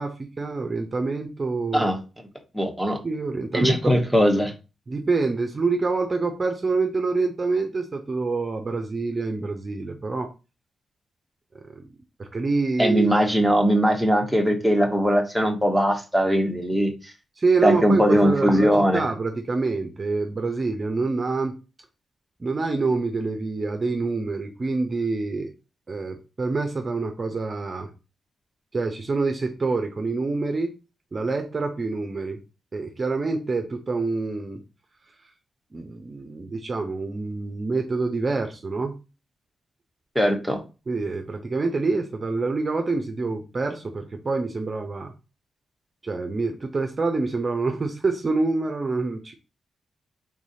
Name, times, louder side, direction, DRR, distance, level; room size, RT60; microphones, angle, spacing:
voice 1, 0.0-1.9 3.0-4.0 4.9-10.3 11.5-11.9 12.2-13.2 17.4-21.5 22.4-25.5 25.9-27.9 28.7-30.7 31.1-32.4 32.7-34.6 35.7-38.9 40.9-45.1 46.0-49.3, right 3 dB, 35° right, 4 dB, 0.6 m, -26 dB
voice 2, 2.5-3.0 3.5-4.5 12.8-17.1 17.6-19.0 40.1-40.6, equal, ahead, 3 dB, 1.1 m, -20 dB
4.7 x 3.7 x 2.7 m, 0.30 s
cardioid pair, 95°, 0 cm